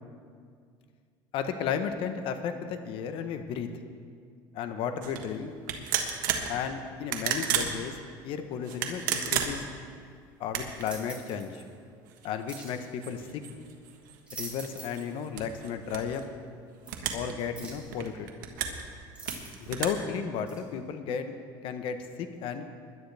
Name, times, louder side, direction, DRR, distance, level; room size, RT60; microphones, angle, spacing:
voice 1, 1.3-3.7 4.5-5.5 6.5-7.9 8.2-9.6 10.4-11.6 12.2-13.4 14.4-16.2 17.1-18.3 19.6-21.3 21.6-22.8, left 7 dB, 60° left, 8 dB, 1.1 m, -33 dB
sound 1, 5.0-5.2 5.7-6.5 7.0-7.7 8.6-9.8 10.4-10.9 11.5-11.6 12.1-14.2 14.6-16.2 16.9-17.3 17.6-18.8 19.3-19.9, right 9 dB, 90° right, 1.4 m, -32 dB
sound 2, 10.8-11.5 12.5-12.8 14.0-15.1 15.4-15.5 16.9-17.0 17.5-17.9 19.1-19.8 20.5-20.6, right 3 dB, 10° right, 3.6 m, -44 dB
20.5 x 11.0 x 3.5 m, 2.1 s
supercardioid pair, 110°, 10 cm